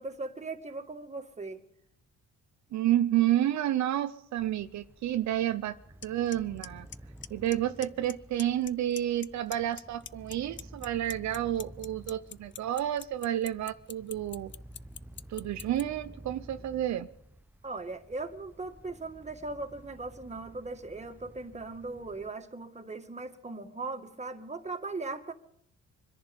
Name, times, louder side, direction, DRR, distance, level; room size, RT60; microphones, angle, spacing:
voice 1, 0.0-1.6 17.6-25.3, right 3 dB, 20° right, 5 dB, 2.0 m, -39 dB
voice 2, 2.7-5.8 6.0-6.9 7.3-14.5 15.3-17.1, right 12 dB, 65° right, 9 dB, 0.7 m, -30 dB
sound 1, 4.4-22.3, right 1 dB, 5° right, 0.7 m, -52 dB
Clock, 6.0-6.1 6.3-6.7 6.9-7.5 7.8-8.1 8.4-9.3 9.5-15.8, left 9 dB, 40° left, 0.5 m, -41 dB
25.0 x 10.5 x 5.3 m, 0.69 s
cardioid pair, 90°, 30 cm